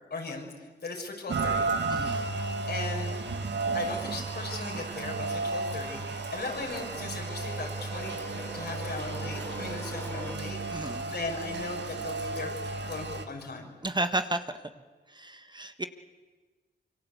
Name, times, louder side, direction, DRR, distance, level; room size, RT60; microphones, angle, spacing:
voice 1, 0.1-1.7 2.4-3.1 3.7-12.5 12.9-13.7, left 3 dB, 65° left, 2 dB, 6.5 m, -38 dB
Rain, 1.3-13.3, right 3 dB, 70° right, 2.2 m, -33 dB
voice 2, 1.9-2.2 10.7-11.0 13.8-14.4 15.2-15.8, right 2 dB, 25° right, 9 dB, 1.4 m, -32 dB
sound 1, 2.2-10.4, left 1 dB, 10° left, 3.1 m, -47 dB
26.5 x 24.0 x 8.4 m, 1.3 s
cardioid pair, 65°, 19 cm